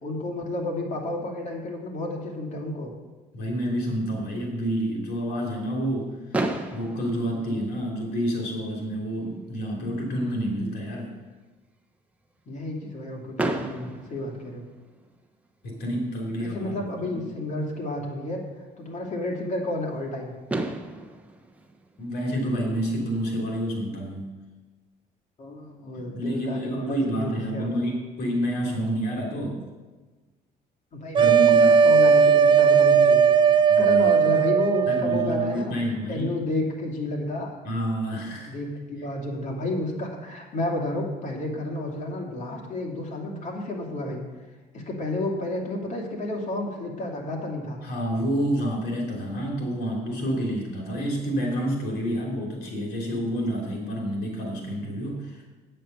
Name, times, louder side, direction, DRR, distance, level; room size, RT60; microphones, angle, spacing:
voice 1, 0.0-2.9 12.5-14.6 16.4-18.4 18.8-20.3 25.4-27.8 30.9-35.7 36.1-37.6 38.5-44.2 44.7-47.8, left 1 dB, 45° left, 1 dB, 2.6 m, -31 dB
voice 2, 3.3-6.1 6.7-11.1 15.6-16.7 22.0-24.3 25.9-29.6 31.2-31.8 33.7-34.1 34.9-36.3 37.6-38.5 47.8-55.4, equal, 70° left, -1 dB, 3.1 m, -28 dB
Fireworks, 6.3-8.4 9.2-9.3 9.5-9.7 10.0-10.1 13.4-15.2 16.9-17.0 20.0-20.1 20.5-22.8, right 2 dB, 10° right, 1.1 m, -33 dB
sound 1, 31.1-35.6, right 6 dB, 30° right, 0.4 m, -18 dB
9.1 x 7.7 x 6.8 m, 1.2 s
cardioid pair, 110°, 17 cm